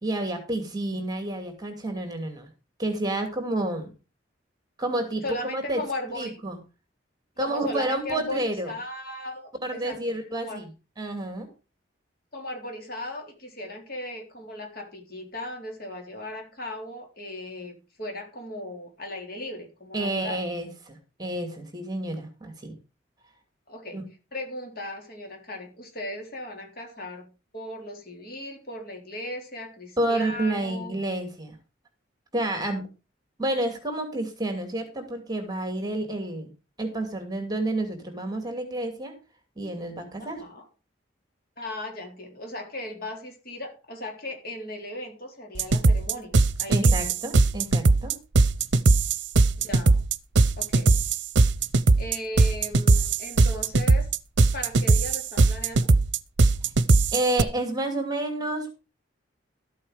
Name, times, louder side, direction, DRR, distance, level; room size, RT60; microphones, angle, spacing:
voice 1, 0.0-2.5 2.8-3.9 4.8-5.2 5.5-5.8 6.1-6.6 7.4-8.7 9.6-10.7 11.0-11.5 19.9-22.7 23.9-24.0 30.0-31.6 32.3-32.8 33.4-36.5 36.8-39.1 39.6-40.4 46.7-48.2 57.1-58.7, right 1 dB, 20° right, 6 dB, 2.4 m, -29 dB
voice 2, 5.2-6.4 7.4-10.6 12.3-20.4 23.7-24.0 24.3-27.3 27.5-30.9 40.2-40.7 41.6-47.1 49.6-50.0 50.6-51.0 52.0-54.1 54.5-55.9, left 1 dB, 50° left, 2 dB, 3.9 m, -37 dB
sound 1, 45.6-57.4, right 3 dB, 65° right, 0.8 m, -20 dB
13.0 x 8.6 x 4.9 m, 0.31 s
head